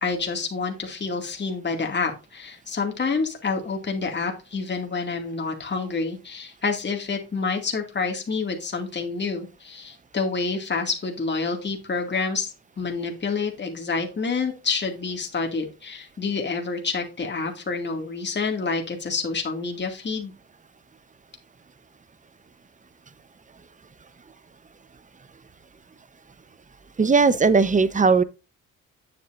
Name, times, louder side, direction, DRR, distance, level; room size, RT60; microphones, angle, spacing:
voice 1, 0.0-20.3, left 4 dB, 35° left, 2.2 m, -28 dB
voice 2, 27.0-28.2, right 4 dB, 25° right, 0.9 m, -18 dB
8.8 x 7.5 x 2.5 m
cardioid pair, 80°, 32 cm